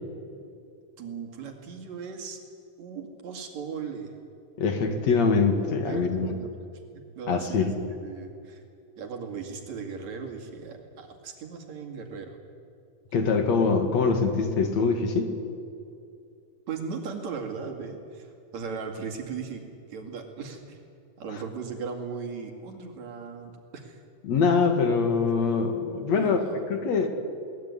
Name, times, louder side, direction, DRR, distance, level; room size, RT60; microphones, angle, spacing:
voice 1, 1.0-2.4 2.8-4.1 5.5-6.6 6.9-7.7 8.0-8.6 9.0-12.4 16.7-19.6 19.9-20.8 21.2-24.0 26.1-26.7, right 5 dB, 65° right, 3 dB, 3.6 m, -37 dB
voice 2, 4.6-6.4 7.3-7.8 13.1-15.3 24.2-26.4 26.7-27.1, left 4 dB, 65° left, 6 dB, 3.0 m, -24 dB
21.5 x 18.5 x 9.6 m, 2.4 s
omnidirectional pair, 3.4 m